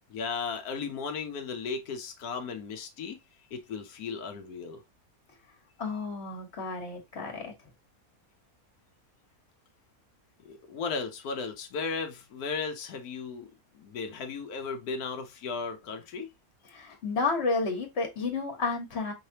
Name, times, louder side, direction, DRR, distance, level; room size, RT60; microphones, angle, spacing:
voice 1, 0.1-3.2 3.5-4.8 10.4-16.3, left 5 dB, 85° left, 1.3 m, -35 dB
voice 2, 5.8-7.5 16.7-19.1, left 4 dB, 45° left, 1.8 m, -31 dB
5.3 x 3.3 x 2.8 m
omnidirectional pair, 1.5 m